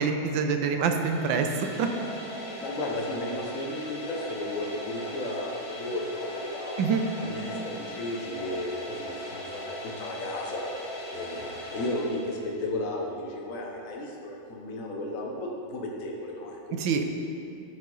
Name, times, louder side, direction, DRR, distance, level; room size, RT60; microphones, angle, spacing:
voice 1, 0.0-1.9 6.8-7.0 16.8-17.0, right 5 dB, 80° right, 5 dB, 1.4 m, -26 dB
sound 1, 0.8-12.8, left 1 dB, 90° left, 2.4 m, -39 dB
voice 2, 2.6-6.9 7.2-10.7 11.1-17.0, left 1 dB, 50° left, -1 dB, 1.1 m, -34 dB
12.5 x 5.4 x 3.9 m, 2.5 s
omnidirectional pair, 2.1 m